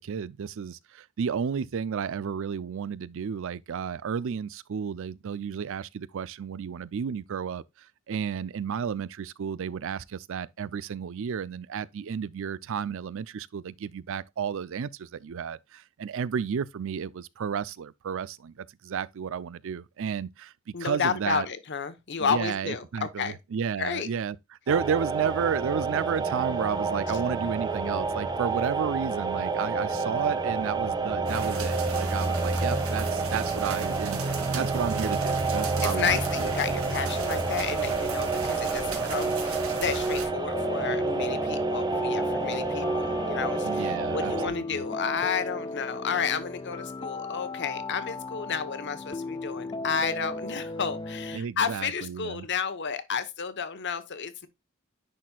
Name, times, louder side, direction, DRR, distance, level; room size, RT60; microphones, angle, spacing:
voice 1, 0.0-20.5 20.8-21.5 22.2-24.4 24.7-36.5 43.6-44.8 51.3-52.5, right 7 dB, 65° right, 0.4 m, -32 dB
voice 2, 20.7-23.4 23.8-24.1 35.8-54.5, left 6 dB, 55° left, 1.0 m, -31 dB
sound 1, 24.7-44.5, right 3 dB, 20° right, 0.9 m, -29 dB
sound 2, 31.3-40.3, right 3 dB, 85° right, 1.8 m, -35 dB
sound 3, 40.5-51.4, left 3 dB, 20° left, 0.3 m, -36 dB
10.0 x 4.3 x 2.3 m
head